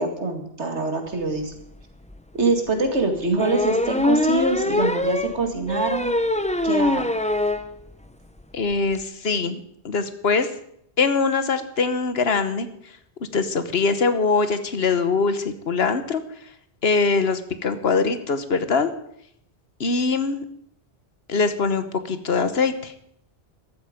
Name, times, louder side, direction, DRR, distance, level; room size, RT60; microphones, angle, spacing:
voice 1, 0.0-1.5 2.3-6.1 6.6-7.1, right 2 dB, 85° right, 5 dB, 2.4 m, -24 dB
sound 1, 1.6-1.7 2.1-2.2 3.4-7.7 8.1-8.2 8.4-8.5 8.7-9.0, left 1 dB, 10° left, 0.7 m, -23 dB
voice 2, 8.5-9.6 9.8-10.5 11.0-12.7 13.3-16.2 16.8-18.9 19.8-20.4 21.3-22.9, left 4 dB, 65° left, 11 dB, 1.4 m, -22 dB
14.5 x 12.5 x 5.1 m, 0.71 s
omnidirectional pair, 1.1 m